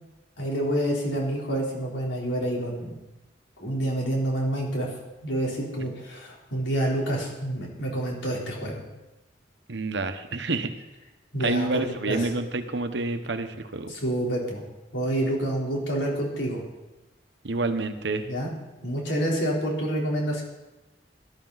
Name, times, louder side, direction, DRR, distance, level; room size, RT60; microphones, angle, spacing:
voice 1, 0.4-2.9 3.6-4.9 5.2-8.8 11.3-12.3 13.9-14.6 14.9-16.6 18.3-18.5 18.8-20.4, right 1 dB, 90° left, -2 dB, 3.8 m, -28 dB
voice 2, 9.7-10.7 11.4-13.9 17.4-18.3, right 3 dB, 75° right, 8 dB, 1.1 m, -28 dB
17.5 x 11.5 x 4.1 m, 1.0 s
head